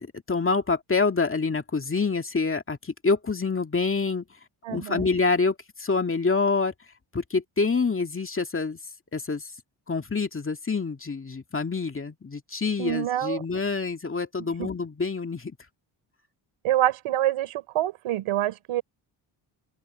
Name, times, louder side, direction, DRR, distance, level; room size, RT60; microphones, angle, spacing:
voice 1, 0.3-4.2 4.7-6.7 7.1-8.8 9.1-9.5 9.9-15.5, left 4 dB, 25° left, 2.2 m, -26 dB
voice 2, 4.6-5.1 12.8-13.4 14.4-14.7 16.6-18.8, right 13 dB, 80° right, 4.8 m, -26 dB
open air
cardioid pair, 75°, 49 cm